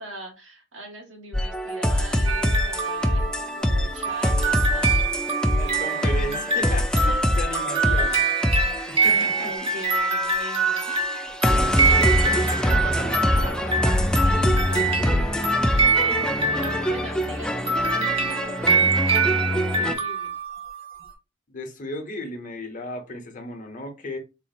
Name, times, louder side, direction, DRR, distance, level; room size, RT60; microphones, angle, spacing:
voice 1, 0.0-7.3 9.0-11.3 11.6-12.0 14.2-20.3, right 1 dB, 85° right, 1.5 m, -40 dB
sound 1, 1.3-19.9, equal, 5° left, 0.3 m, -24 dB
sound 2, 2.3-17.3 17.7-21.1, right 4 dB, 30° right, 0.8 m, -25 dB
voice 2, 5.6-8.3 8.9-9.5 11.6-13.8 21.5-24.2, left 1 dB, 45° left, 0.8 m, -35 dB
4.1 x 2.0 x 4.0 m
head